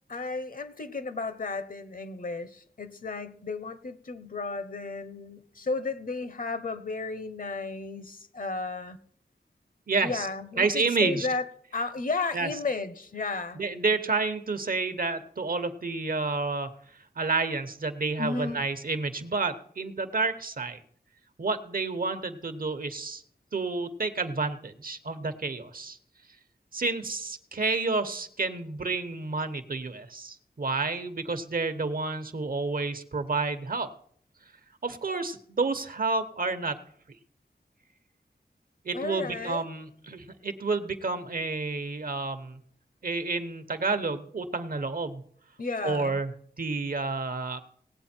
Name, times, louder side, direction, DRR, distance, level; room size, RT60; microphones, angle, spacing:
voice 1, 0.1-9.0 10.0-11.4 11.7-13.6 18.2-18.6 38.9-39.6 45.6-46.2, left 3 dB, 55° left, 12 dB, 1.1 m, -33 dB
voice 2, 9.9-10.3 10.6-11.3 12.3-12.5 13.6-16.7 17.2-20.8 21.4-23.2 23.5-26.0 26.7-33.9 34.8-36.8 38.8-42.6 43.0-45.2 45.8-46.3 46.6-47.6, right 3 dB, 60° right, 10 dB, 1.0 m, -30 dB
18.0 x 8.1 x 4.5 m, 0.62 s
wide cardioid pair, 95°, 17 cm